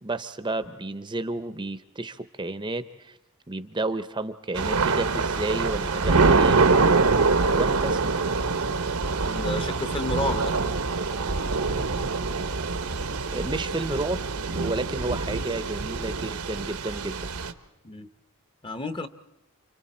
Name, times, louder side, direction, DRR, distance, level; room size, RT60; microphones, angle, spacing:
voice 1, 0.0-3.2 3.5-6.8 7.5-8.0 13.3-17.2, right 2 dB, 20° right, 11 dB, 0.7 m, -31 dB
Thunder / Rain, 4.5-17.5, right 4 dB, 80° right, 1.1 m, -25 dB
voice 2, 9.2-10.5 17.8-18.1 18.6-19.1, left 1 dB, 20° left, 10 dB, 0.8 m, -31 dB
29.5 x 25.0 x 4.3 m, 0.99 s
head